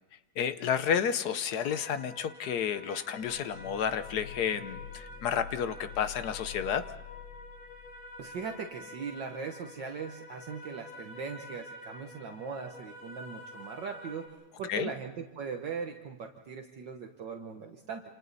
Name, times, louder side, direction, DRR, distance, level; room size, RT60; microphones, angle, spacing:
voice 1, 0.4-6.8 14.7-14.9, left 8 dB, 60° left, 12 dB, 1.2 m, -31 dB
sound 1, 1.6-14.3, left 1 dB, 45° left, 5.1 m, -48 dB
sound 2, 3.2-8.2 8.4-8.5, left 8 dB, 85° left, 4.7 m, -47 dB
voice 2, 8.2-18.0, right 5 dB, 60° right, 3 dB, 1.8 m, -40 dB
28.0 x 28.0 x 4.1 m, 1.0 s
omnidirectional pair, 2.3 m